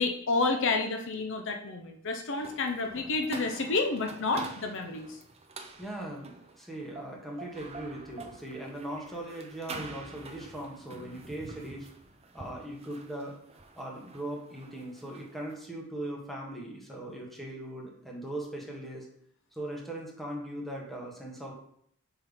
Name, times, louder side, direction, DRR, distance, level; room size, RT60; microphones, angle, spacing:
voice 1, 0.0-5.1, left 3 dB, 60° left, 4 dB, 0.7 m, -30 dB
sound 1, 2.4-15.6, right 3 dB, 30° right, 0.7 m, -46 dB
voice 2, 5.8-6.3 6.6-11.9 12.3-13.3 13.7-19.1 19.5-21.5, right 1 dB, ahead, -2 dB, 1.5 m, -39 dB
5.7 x 4.4 x 5.2 m, 0.67 s
head